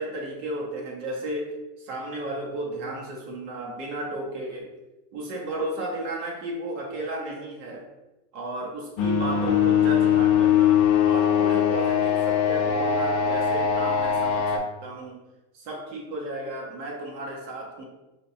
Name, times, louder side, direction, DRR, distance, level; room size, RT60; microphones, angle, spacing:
voice 1, 0.0-4.7 5.1-7.9 8.3-15.2 15.5-17.9, right 1 dB, 75° right, -1 dB, 0.9 m, -34 dB
sound 1, 9.0-14.6, left 8 dB, 60° left, 0.6 m, -21 dB
4.3 x 2.2 x 2.6 m, 1.0 s
cardioid pair, 160°, 36 cm